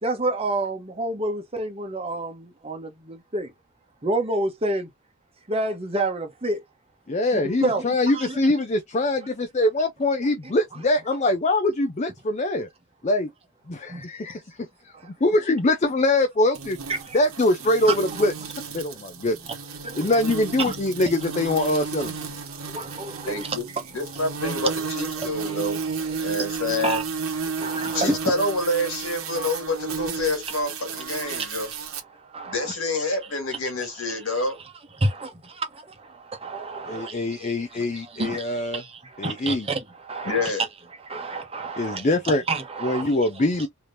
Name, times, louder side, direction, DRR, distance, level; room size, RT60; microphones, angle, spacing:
voice 1, 0.0-3.5 4.0-4.9 5.5-6.6 7.3-7.8 8.1-8.4 13.9-14.0 17.0-17.2 17.9-18.0 19.8-20.1 20.7-20.8 22.5-23.5 25.2-25.3 26.2-27.0 27.4-28.2 31.3-31.5 32.3-32.7 33.5-33.6 35.0-35.1 36.3-37.8 38.1-40.5 41.0-42.1 42.5-43.1, right 2 dB, 25° right, 0.9 m, -29 dB
voice 2, 7.1-12.7 13.0-13.3 13.7-14.9 15.2-16.8 17.1-18.3 18.7-19.4 20.0-22.1 36.9-38.8 39.2-39.7 41.8-42.4 42.8-43.7, left 2 dB, 30° left, 0.5 m, -23 dB
sound 1, 16.5-32.0, right 5 dB, 65° right, 1.1 m, -33 dB
voice 3, 23.2-23.6 23.9-25.8 26.2-27.0 27.8-31.7 32.4-34.6 37.8-37.9 40.2-40.6, left 2 dB, 65° left, 1.8 m, -27 dB
3.4 x 2.9 x 2.6 m
head